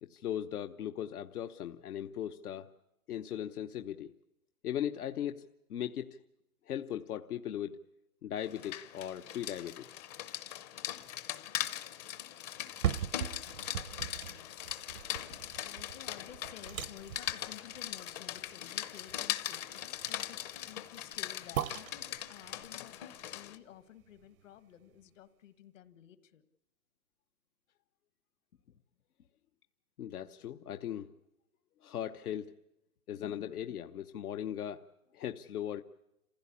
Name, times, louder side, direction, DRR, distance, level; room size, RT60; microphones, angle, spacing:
voice 1, 0.0-2.7 3.1-4.1 4.6-6.2 6.7-7.8 8.2-9.9 30.0-31.1 31.8-32.5 33.1-34.8 35.1-35.8, left 10 dB, 75° left, 7 dB, 1.0 m, -38 dB
Rain, 8.4-23.6, left 12 dB, 25° left, 0.7 m, -40 dB
Wine Bottle open, 12.5-24.6 25.0-25.1, right 11 dB, 65° right, 0.7 m, -41 dB
voice 2, 13.9-14.9 15.2-26.4, left 11 dB, 55° left, 13 dB, 1.6 m, -54 dB
27.5 x 16.0 x 8.5 m, 0.92 s
hypercardioid pair, 145°, 45 cm